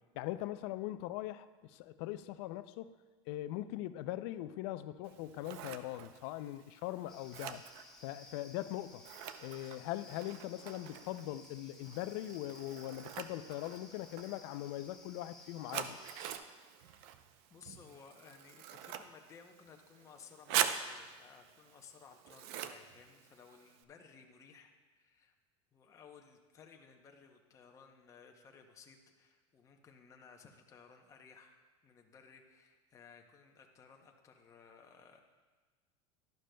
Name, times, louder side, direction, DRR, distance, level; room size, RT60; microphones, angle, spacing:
voice 1, 0.1-2.9 3.3-7.6 8.0-9.0 9.4-16.0, left 14 dB, 55° left, 13 dB, 0.4 m, -41 dB
Scissors, 5.0-23.8, right 9 dB, 55° right, 0.6 m, -44 dB
sound 1, 7.1-16.4, left 2 dB, 5° left, 1.3 m, -57 dB
voice 2, 16.8-17.2 17.5-25.3 25.7-35.2, left 6 dB, 20° left, 3 dB, 0.7 m, -58 dB
11.5 x 11.0 x 2.2 m, 1.4 s
supercardioid pair, 145°, 16 cm